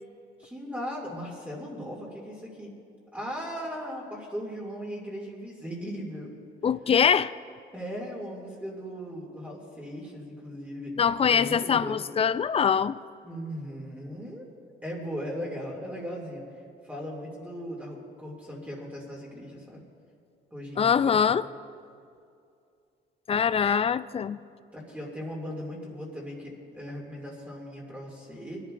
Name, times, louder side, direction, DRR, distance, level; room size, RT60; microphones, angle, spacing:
voice 1, 0.4-2.7 3.1-6.3 7.7-10.9 11.3-12.0 13.2-14.5 14.8-16.4 16.8-19.8 20.5-21.4 24.7-28.6, equal, 5° right, 2.4 m, -38 dB
voice 2, 6.6-7.3 11.0-13.0 20.8-21.4 23.3-24.4, left 7 dB, 30° left, 0.4 m, -23 dB
21.0 x 11.0 x 2.5 m
cardioid pair, 90°, 20 cm